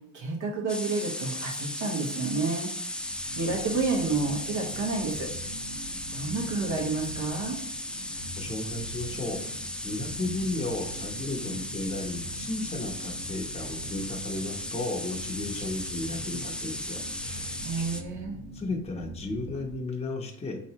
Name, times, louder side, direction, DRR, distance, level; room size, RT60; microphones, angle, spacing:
voice 1, 0.1-2.7 3.3-5.3 6.1-7.6 17.6-18.4, right 3 dB, 75° right, 0 dB, 1.2 m, -30 dB
sound 1, 0.7-18.0, left 1 dB, 5° left, 0.3 m, -36 dB
sound 2, 2.8-19.8, right 1 dB, 50° right, 1.5 m, -43 dB
voice 2, 8.4-17.8 18.5-20.6, left 2 dB, 20° left, 0 dB, 0.8 m, -34 dB
4.5 x 3.1 x 2.8 m, 0.75 s
cardioid pair, 90°, 30 cm